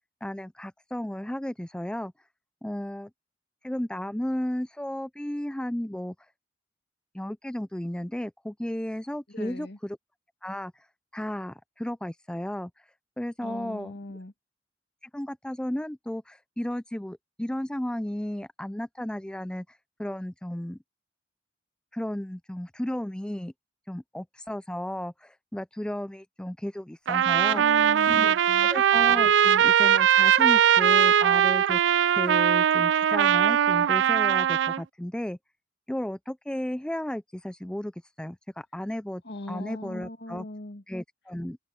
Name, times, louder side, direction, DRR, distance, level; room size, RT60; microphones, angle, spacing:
voice 1, 0.2-2.1 2.6-3.1 3.6-6.1 7.1-10.0 10.4-10.9 11.1-12.8 13.2-13.9 15.1-20.8 21.9-23.5 23.9-27.6 28.1-35.4 35.9-37.9 38.2-39.2 39.5-40.5 40.9-41.6, left 1 dB, 5° left, 0.4 m, -34 dB
voice 2, 9.3-9.8 13.4-14.3 27.5-28.7 39.2-40.8, left 1 dB, 65° left, 2.4 m, -39 dB
Trumpet, 27.1-34.8, right 9 dB, 80° right, 0.3 m, -21 dB
open air
head